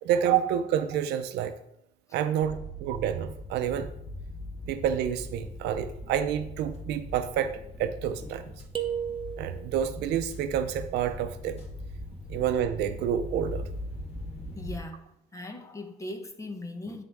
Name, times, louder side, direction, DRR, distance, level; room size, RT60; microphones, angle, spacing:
voice 1, 0.0-1.5 2.1-3.9 4.7-7.5 7.8-8.4 9.4-11.6 12.3-13.6, right 9 dB, 80° right, 10 dB, 0.6 m, -28 dB
sound 1, 2.4-14.8, left 1 dB, 35° left, 1.6 m, -40 dB
sound 2, 8.7-9.9, right 9 dB, 30° right, 0.7 m, -33 dB
voice 2, 14.5-17.0, left 2 dB, 20° left, 6 dB, 0.9 m, -39 dB
9.4 x 3.6 x 3.6 m, 0.78 s
cardioid pair, 110°, 17 cm